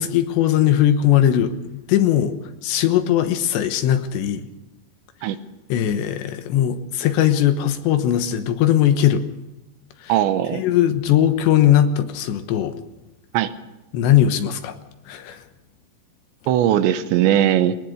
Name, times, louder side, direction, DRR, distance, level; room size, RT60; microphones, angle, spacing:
voice 1, 0.0-2.4 2.6-4.5 5.7-9.2 10.0-10.1 10.5-12.7 13.9-14.8 15.1-15.4, left 11 dB, 80° left, 9 dB, 3.3 m, -19 dB
voice 2, 10.1-10.6 13.3-13.5 16.5-17.8, right 11 dB, 90° right, 11 dB, 3.2 m, -19 dB
20.0 x 19.5 x 6.7 m, 0.96 s
omnidirectional pair, 5.2 m